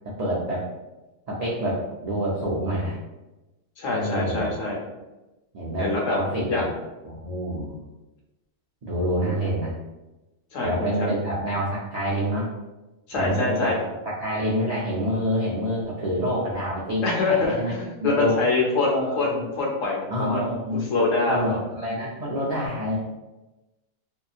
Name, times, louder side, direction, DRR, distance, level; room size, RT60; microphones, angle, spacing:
voice 1, 0.2-0.7 1.3-3.0 3.9-4.5 5.5-6.7 7.0-7.8 8.8-9.7 10.6-12.5 13.2-13.8 14.2-17.7 18.0-18.3 18.9-19.5 20.1-20.9 21.3-23.0, equal, 85° right, -7 dB, 0.3 m, -27 dB
voice 2, 3.8-4.8 5.8-6.2 6.5-6.6 9.2-9.3 10.5-11.1 13.1-13.7 17.0-21.6, left 3 dB, 75° left, -2 dB, 1.1 m, -25 dB
2.8 x 2.2 x 2.3 m, 1.1 s
omnidirectional pair, 1.4 m